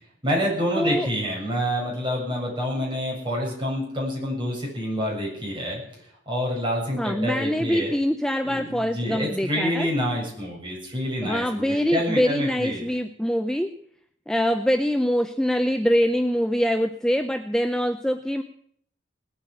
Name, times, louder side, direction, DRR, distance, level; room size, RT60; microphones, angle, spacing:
voice 1, 0.2-5.8 6.3-7.9 8.4-12.9, equal, 25° right, -2 dB, 7.3 m, -27 dB
voice 2, 0.8-1.1 7.0-9.9 11.2-13.7 14.3-18.4, equal, 5° left, 7 dB, 0.6 m, -24 dB
18.5 x 8.9 x 8.4 m, 0.64 s
head